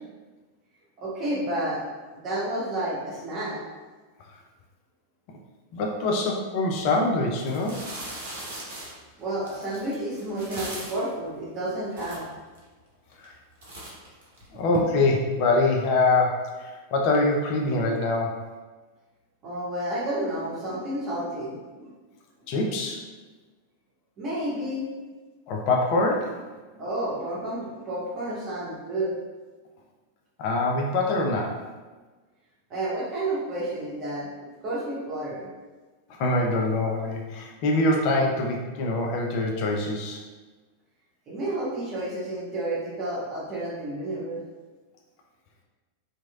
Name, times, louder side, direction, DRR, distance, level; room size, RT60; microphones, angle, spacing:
voice 1, 1.0-1.8 2.1-3.6 9.2-12.3 19.4-21.9 24.2-24.9 26.7-29.2 32.7-34.3 34.6-35.5 41.3-44.4, right 1 dB, 30° right, -6 dB, 1.0 m, -30 dB
voice 2, 5.7-7.8 13.2-13.3 14.5-18.4 22.5-23.0 25.5-26.3 30.4-31.7 36.2-40.2, left 2 dB, 45° left, 0 dB, 0.4 m, -24 dB
sound 1, 6.8-6.9 7.4-11.1 11.7-11.8 11.9-12.6 13.1-13.4 13.6-14.8, right 1 dB, 60° right, 0.8 m, -39 dB
2.9 x 2.7 x 2.3 m, 1.3 s
figure-of-eight pair, 90°, 0 cm